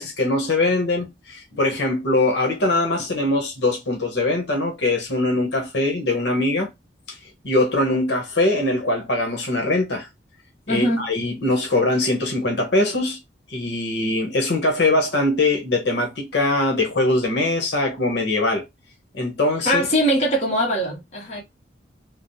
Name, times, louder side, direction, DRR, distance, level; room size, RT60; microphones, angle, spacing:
voice 1, 0.0-6.7 7.1-7.2 7.4-10.1 10.7-13.2 13.5-18.6 19.1-19.9, left 2 dB, 75° left, 0.9 m, -22 dB
voice 2, 10.7-11.1 19.6-21.4, equal, 40° left, 1.0 m, -21 dB
3.0 x 2.0 x 2.6 m
head